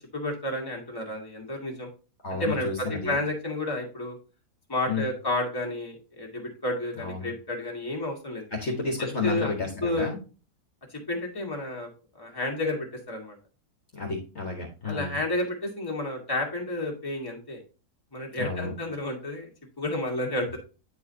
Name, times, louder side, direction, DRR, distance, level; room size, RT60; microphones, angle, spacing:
voice 1, 0.1-1.9 2.4-4.2 4.7-8.4 9.0-9.5 9.8-10.1 11.1-11.9 12.2-13.4 14.9-17.6 18.1-19.5 19.8-20.6, left 1 dB, 15° left, -1 dB, 1.8 m, -31 dB
voice 2, 2.2-3.2 4.9-5.0 7.0-7.3 8.5-10.2 13.9-15.2 18.4-18.7, left 4 dB, 45° left, 1 dB, 1.5 m, -31 dB
9.4 x 4.7 x 2.7 m, 0.34 s
omnidirectional pair, 1.7 m